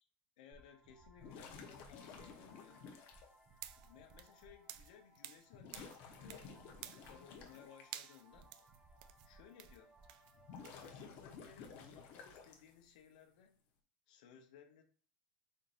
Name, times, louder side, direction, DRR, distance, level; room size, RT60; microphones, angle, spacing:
voice 1, 0.4-2.9 3.8-6.7 7.1-8.5 9.2-9.9 10.7-13.6 14.1-14.8, left 8 dB, 75° left, 5 dB, 0.9 m, -61 dB
sound 1, 0.5-10.9, right 2 dB, 20° right, 1.6 m, -64 dB
sound 2, 1.2-3.3 4.3-4.4 5.5-7.8 10.3-12.9, left 5 dB, 50° left, 1.0 m, -53 dB
sound 3, 3.5-5.5 5.7-6.5 6.8-7.6 7.9-10.9, right 13 dB, 70° right, 0.4 m, -52 dB
4.2 x 3.8 x 2.6 m, 0.43 s
supercardioid pair, 130°, 4 cm